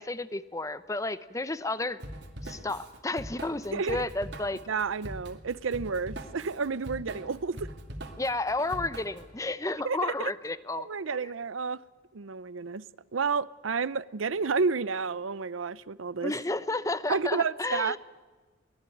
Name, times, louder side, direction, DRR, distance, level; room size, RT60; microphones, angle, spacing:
voice 1, 0.0-2.0 2.4-4.6 8.2-11.3 16.2-18.0, left 2 dB, 15° left, 0.7 m, -32 dB
Drum kit / Drum, 2.0-9.3, right 1 dB, 60° right, 2.3 m, -42 dB
voice 2, 4.7-7.7 9.8-10.3 10.8-11.8 12.1-12.8 13.1-16.3 17.1-18.0, right 5 dB, 90° right, 0.6 m, -30 dB
23.5 x 18.0 x 9.2 m
head